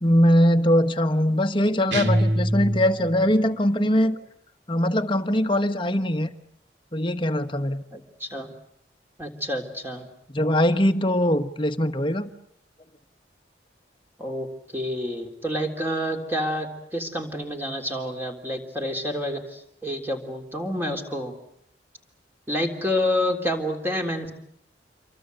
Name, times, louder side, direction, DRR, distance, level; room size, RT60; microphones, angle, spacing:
voice 1, 0.0-4.2 4.7-6.3 6.9-7.8 10.3-12.3, equal, 30° left, 8 dB, 1.3 m, -21 dB
sound 1, 1.9-3.3, right 1 dB, 85° right, 2.2 m, -24 dB
voice 2, 7.9-8.5 9.2-10.1 14.2-14.5 14.7-21.3 22.5-24.3, left 1 dB, 10° right, 3 dB, 3.6 m, -28 dB
28.0 x 23.5 x 8.0 m, 0.73 s
head